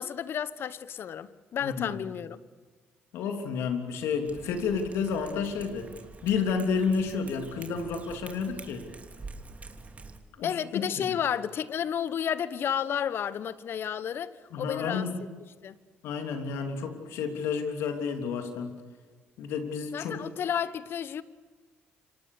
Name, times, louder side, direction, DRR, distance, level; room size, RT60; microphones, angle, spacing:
voice 1, 0.0-2.4 10.4-15.1 15.6-15.8 19.9-21.2, left 8 dB, 60° left, 1.1 m, -32 dB
voice 2, 1.6-1.9 3.1-5.9 6.2-8.9 10.4-10.8 14.5-15.2 16.0-18.8 19.4-20.2, left 5 dB, 75° left, 3.2 m, -30 dB
Cat, 4.2-10.2, right 3 dB, 35° right, 3.1 m, -46 dB
28.0 x 25.5 x 6.8 m
supercardioid pair, 65°, 4 cm